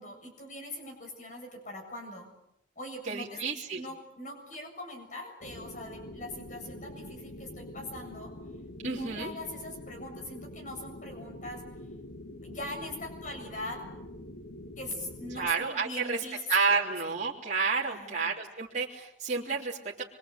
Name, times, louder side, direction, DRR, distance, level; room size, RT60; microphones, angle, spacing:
voice 1, 0.0-2.3 2.8-3.4 3.8-8.3 8.8-11.6 12.4-13.8 14.8-16.9 17.8-18.3, left 1 dB, 40° left, 3 dB, 7.3 m, -41 dB
voice 2, 3.1-3.8 8.8-9.3 15.3-16.2 16.5-20.0, right 5 dB, 40° right, -4 dB, 3.4 m, -30 dB
sound 1, 5.4-15.5, left 1 dB, 75° left, 1.7 m, -45 dB
25.5 x 24.0 x 8.2 m, 0.81 s
head